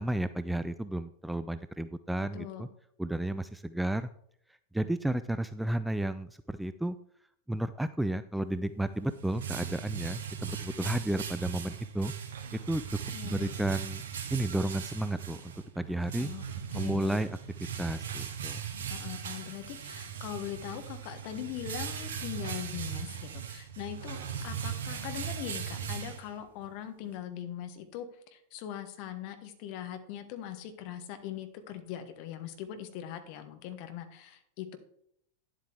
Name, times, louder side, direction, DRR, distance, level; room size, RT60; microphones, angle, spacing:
voice 1, 0.0-2.7 3.0-4.1 4.7-7.0 7.5-12.1 12.5-12.8 13.2-14.0 14.3-16.3 16.7-17.4 17.8-18.6, right 1 dB, 5° right, 13 dB, 0.3 m, -32 dB
voice 2, 2.3-2.7 13.1-13.5 16.2-17.2 18.9-34.8, left 10 dB, 45° left, 9 dB, 1.4 m, -41 dB
sound 1, 8.8-26.7, right 8 dB, 60° right, 1.7 m, -39 dB
10.5 x 8.0 x 3.4 m, 0.69 s
figure-of-eight pair, 90°, 0 cm